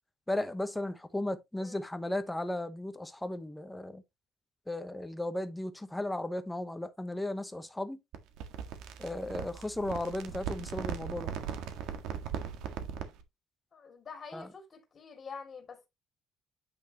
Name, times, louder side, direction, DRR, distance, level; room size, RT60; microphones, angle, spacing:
voice 1, 0.3-4.0 4.7-8.0 9.0-11.3 14.3-14.5, left 1 dB, 5° left, 0.9 m, -35 dB
sound 1, 8.1-13.2, right 8 dB, 90° right, 1.6 m, -39 dB
voice 2, 13.7-15.9, left 5 dB, 25° left, 2.4 m, -47 dB
8.9 x 6.0 x 2.9 m
cardioid pair, 175°, 0 cm